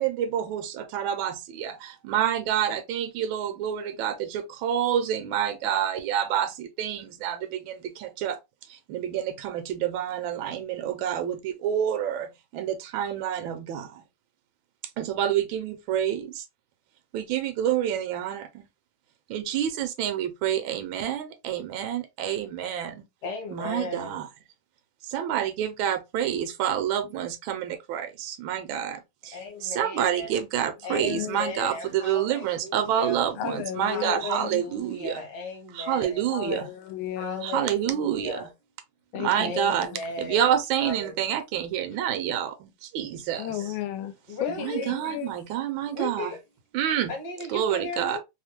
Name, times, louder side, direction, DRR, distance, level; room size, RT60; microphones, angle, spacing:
voice 1, 0.0-8.4 8.7-14.0 15.0-16.5 17.1-18.7 19.3-23.0 23.5-24.3 25.0-35.2 35.7-36.7 37.4-38.5 39.1-39.9 40.2-43.5 44.5-46.3 46.7-47.1 47.5-48.2, right 10 dB, 75° right, 1.3 m, -28 dB
voice 2, 23.2-24.2 29.3-30.3 30.8-33.2 33.9-36.3 37.2-38.5 39.4-40.5 40.8-41.2 44.3-44.8 45.9-46.4 47.1-48.2, left 3 dB, 55° left, 1.4 m, -36 dB
voice 3, 30.9-31.5 33.4-34.7 36.3-37.5 39.1-40.0 43.4-44.1 44.4-45.3, left 12 dB, 80° left, 1.4 m, -34 dB
3.4 x 2.1 x 2.9 m
omnidirectional pair, 2.3 m